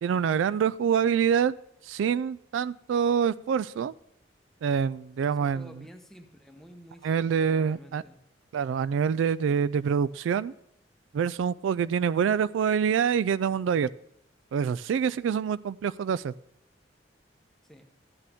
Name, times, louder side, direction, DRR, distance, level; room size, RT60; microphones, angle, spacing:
voice 1, 0.0-1.5 1.9-3.9 4.6-5.7 7.0-8.0 8.5-10.5 11.1-13.9 14.5-16.3, right 7 dB, 90° right, 18 dB, 0.3 m, -26 dB
voice 2, 5.2-8.2 17.6-17.9, equal, ahead, 5 dB, 0.9 m, -50 dB
13.5 x 9.1 x 3.5 m, 0.79 s
head